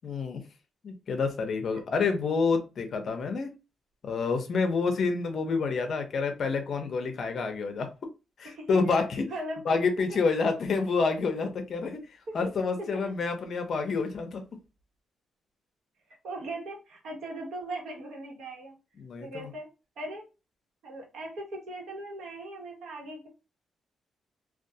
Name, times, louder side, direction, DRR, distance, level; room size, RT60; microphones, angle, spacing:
voice 1, 0.0-0.4 0.8-3.5 4.0-7.9 8.4-9.3 9.7-12.0 12.3-14.4 19.0-19.5, left 4 dB, 50° left, 6 dB, 0.6 m, -28 dB
voice 2, 8.4-9.0 9.3-9.9 12.3-12.5 12.8-13.1 16.2-18.8 19.2-19.7 20.0-20.3 20.8-23.3, right 1 dB, 70° right, 0 dB, 1.1 m, -39 dB
2.4 x 2.3 x 2.7 m, 0.29 s
cardioid pair, 130°, 0 cm